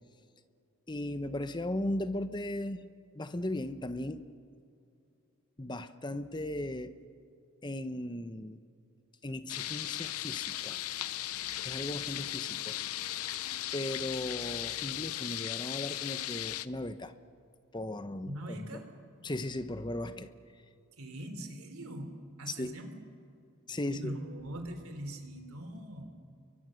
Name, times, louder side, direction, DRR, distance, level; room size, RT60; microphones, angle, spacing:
voice 1, 0.9-2.9 3.1-4.3 5.6-6.9 7.6-8.6 9.2-10.8 11.6-12.8 13.7-17.1 17.7-18.6 19.2-20.3 22.5-22.8 23.7-24.1, left 1 dB, 20° left, 11 dB, 0.8 m, -37 dB
sound 1, 9.5-16.7, left 14 dB, 90° left, 0.6 m, -37 dB
voice 2, 18.2-18.8 21.0-22.1 22.4-22.9 23.7-26.2, right 1 dB, 80° right, 6 dB, 3.3 m, -41 dB
29.0 x 23.5 x 6.4 m, 2.5 s
head